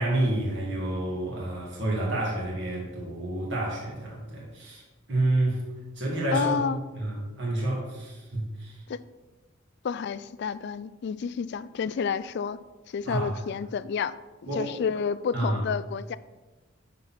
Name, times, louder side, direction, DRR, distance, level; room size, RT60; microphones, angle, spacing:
voice 1, 0.0-4.8 5.1-5.6 6.0-8.8 13.0-13.4 14.4-14.7 15.3-15.6, right 1 dB, 65° right, -5 dB, 2.5 m, -29 dB
voice 2, 6.3-6.8 8.9-9.0 9.8-12.6 12.9-14.1 14.5-16.2, left 6 dB, 60° left, 16 dB, 0.3 m, -30 dB
10.5 x 4.2 x 4.3 m, 1.2 s
head